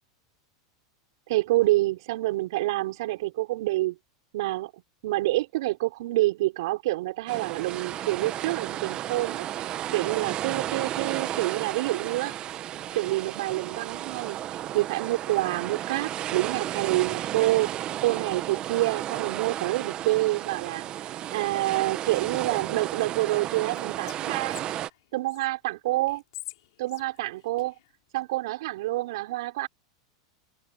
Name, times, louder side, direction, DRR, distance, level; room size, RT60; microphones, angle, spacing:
voice 1, 1.3-4.0 4.3-4.7 5.0-12.3 12.9-17.7 18.0-20.9 21.3-24.6 25.1-26.2 26.8-27.7 28.1-29.7, right 18 dB, 70° right, 6.1 m, -27 dB
sound 1, 7.3-24.9, right 12 dB, 35° right, 1.5 m, -33 dB
Whispering, 23.5-25.5 26.1-28.2, left 18 dB, 70° left, 5.5 m, -46 dB
hypercardioid pair, 115°, 3 cm